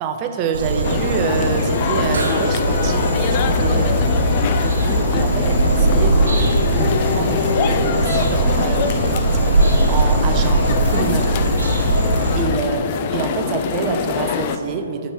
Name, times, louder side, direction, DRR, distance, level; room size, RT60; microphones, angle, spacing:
voice 1, 0.0-11.5 12.3-15.1, right 5 dB, 30° right, 6 dB, 0.5 m, -27 dB
sound 1, 0.5-12.4, right 2 dB, 70° right, 1.4 m, -19 dB
sound 2, 0.8-14.6, left 7 dB, 40° left, 0.3 m, -24 dB
7.1 x 4.3 x 4.4 m, 2.5 s
figure-of-eight pair, 125°, 0 cm